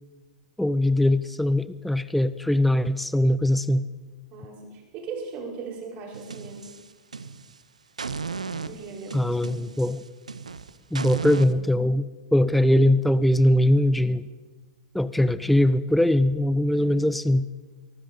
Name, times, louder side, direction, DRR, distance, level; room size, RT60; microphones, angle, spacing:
voice 1, 0.6-3.8 9.1-10.0 10.9-14.3 14.9-17.5, left 1 dB, ahead, 15 dB, 0.4 m, -21 dB
voice 2, 4.3-6.7 8.7-9.6 15.2-15.6 16.7-17.0, right 4 dB, 40° right, -2 dB, 5.5 m, -39 dB
sound 1, 6.1-7.6 8.0-11.5, right 5 dB, 85° right, 0.7 m, -36 dB
23.5 x 12.5 x 3.9 m, 1.3 s
figure-of-eight pair, 100°, 4 cm